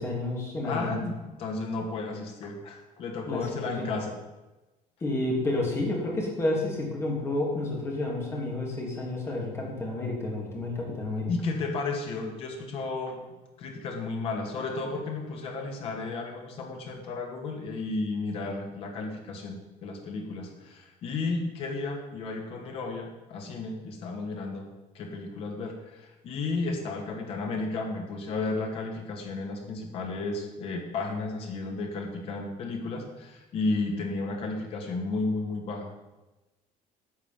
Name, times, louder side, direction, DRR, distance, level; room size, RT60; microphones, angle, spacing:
voice 1, 0.0-1.0 3.3-3.5 3.8-3.9 5.0-11.3, left 2 dB, 20° left, -2 dB, 3.2 m, -30 dB
voice 2, 0.6-4.2 11.3-13.2 13.6-24.6 24.9-35.9, left 3 dB, 45° left, 2 dB, 2.4 m, -33 dB
11.5 x 6.1 x 9.3 m, 1.1 s
cardioid pair, 175°, 14 cm